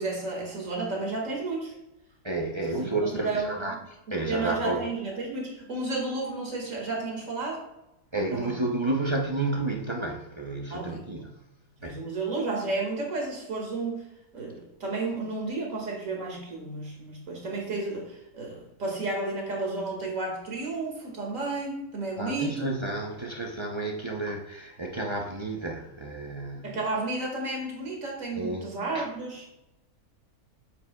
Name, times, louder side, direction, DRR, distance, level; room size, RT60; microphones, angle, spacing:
voice 1, 0.0-1.7 2.7-3.8 4.1-7.6 8.3-8.5 10.7-11.0 11.8-14.1 14.3-22.7 26.6-29.5, right 3 dB, 60° right, 2.4 m, -32 dB
voice 2, 2.2-3.8 4.1-4.8 8.1-11.5 11.8-12.1 22.2-26.8 28.3-28.7 28.9-29.1, right 2 dB, 30° right, 0.6 m, -31 dB
8.3 x 8.0 x 2.3 m
omnidirectional pair, 1.6 m